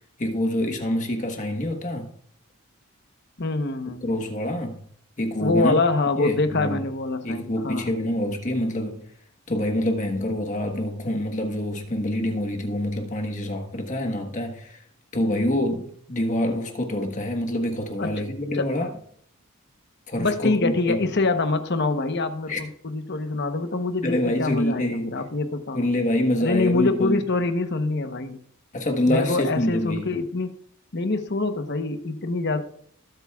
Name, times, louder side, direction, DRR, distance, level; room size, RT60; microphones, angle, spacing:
voice 1, 0.2-2.1 4.0-4.8 5.2-5.8 6.1-6.8 7.2-9.0 9.5-14.8 15.1-18.9 20.1-21.0 22.5-22.6 24.0-25.1 25.7-27.2 28.7-30.2, left 1 dB, 35° left, 1.3 m, -26 dB
voice 2, 3.4-4.0 5.4-7.9 18.0-18.2 18.5-18.9 20.2-25.8 26.4-28.4 29.1-30.5 30.9-32.6, left 3 dB, 55° left, 1.0 m, -25 dB
20.0 x 8.0 x 2.4 m
head